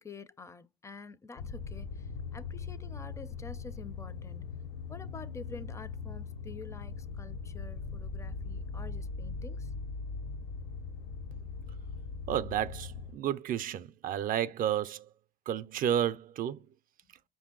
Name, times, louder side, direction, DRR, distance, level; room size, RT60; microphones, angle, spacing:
voice 1, 0.0-4.4 4.9-9.7 16.6-16.7, left 4 dB, 15° left, 0.4 m, -48 dB
sound 1, 1.4-13.1, left 4 dB, 80° left, 0.7 m, -40 dB
voice 2, 12.3-15.1 15.5-16.6, right 10 dB, 55° right, 0.4 m, -31 dB
5.2 x 2.6 x 3.7 m
cardioid pair, 110°, 17 cm